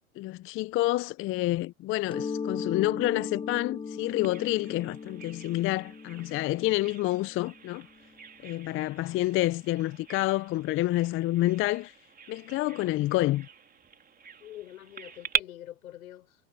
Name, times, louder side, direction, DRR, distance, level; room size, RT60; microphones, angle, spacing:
voice 1, 0.2-7.9 8.4-11.9 12.3-13.5, left 17 dB, 30° left, 0.6 m, -28 dB
Mallet percussion, 2.1-7.6, left 5 dB, 10° left, 1.0 m, -38 dB
Bird vocalization bird call bird song, 4.2-15.4, right 6 dB, 20° right, 3.0 m, -41 dB
voice 2, 14.4-16.4, left 13 dB, 75° left, 5.1 m, -45 dB
hypercardioid pair, 100°, 42 cm